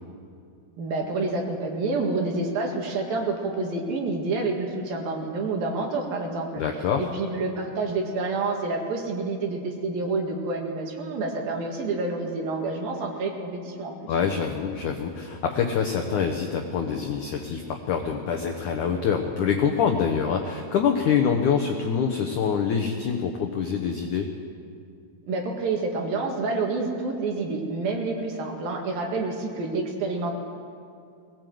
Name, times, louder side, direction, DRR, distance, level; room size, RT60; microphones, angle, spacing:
voice 1, 0.8-6.6 7.0-13.9 25.3-30.3, right 3 dB, 60° right, 1 dB, 3.3 m, -28 dB
voice 2, 6.6-7.1 14.1-24.3, left 7 dB, 80° left, 3 dB, 1.8 m, -25 dB
20.5 x 18.0 x 7.8 m, 2.4 s
omnidirectional pair, 5.1 m